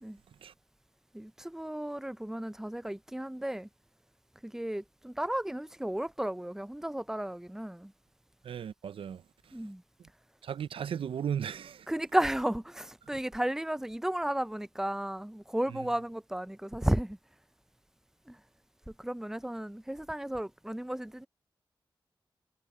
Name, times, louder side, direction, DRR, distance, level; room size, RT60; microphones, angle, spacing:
voice 1, 1.1-3.7 4.4-7.9 9.5-9.8 11.9-17.2 18.3-18.4 19.0-21.3, right 1 dB, 5° right, 0.6 m, -33 dB
voice 2, 8.4-9.2 10.4-11.8, right 8 dB, 85° right, 0.5 m, -35 dB
cardioid pair, 50°, 9 cm